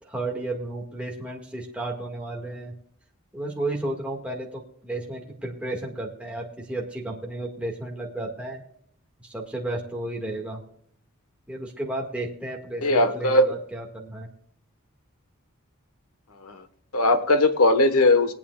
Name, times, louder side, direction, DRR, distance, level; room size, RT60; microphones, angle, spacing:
voice 1, 0.0-2.7 3.3-8.6 9.2-10.6 11.5-14.3, right 2 dB, 5° right, -2 dB, 1.7 m, -33 dB
voice 2, 12.8-13.5 16.4-16.6 16.9-18.3, left 2 dB, 85° left, 10 dB, 1.2 m, -19 dB
21.5 x 8.6 x 2.3 m, 0.68 s
head